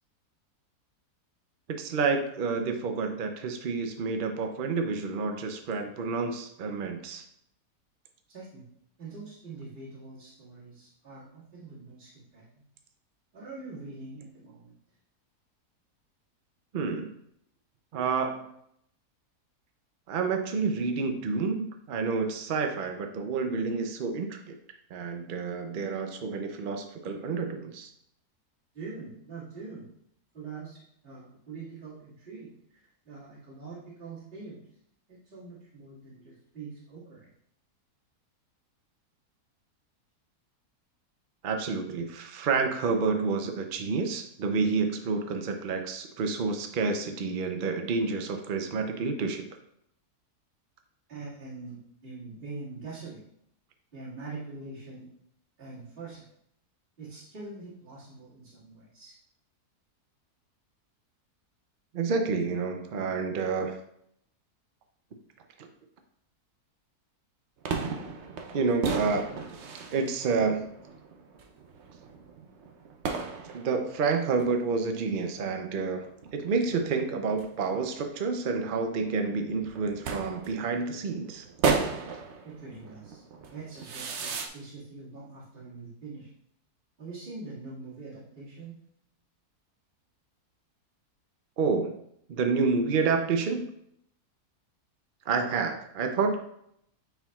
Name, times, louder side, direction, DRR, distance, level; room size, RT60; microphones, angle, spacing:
voice 1, 1.8-7.2 16.7-17.1 17.9-18.5 20.1-24.6 24.9-27.9 41.4-49.5 61.9-63.8 68.5-69.2 69.9-70.7 73.5-76.1 76.3-81.4 91.6-92.0 92.3-93.7 95.3-96.3, right 4 dB, 80° right, 5 dB, 0.4 m, -29 dB
voice 2, 8.3-8.6 9.0-12.6 13.3-14.8 28.7-29.9 30.3-34.7 35.1-37.3 51.1-53.2 53.9-55.1 55.6-56.3 57.0-59.1 82.4-83.2 83.5-86.3 87.0-88.8, right 3 dB, 35° right, -11 dB, 2.2 m, -44 dB
sound 1, 67.6-84.5, right 5 dB, 60° right, 0.8 m, -35 dB
9.0 x 4.5 x 2.3 m, 0.73 s
omnidirectional pair, 1.7 m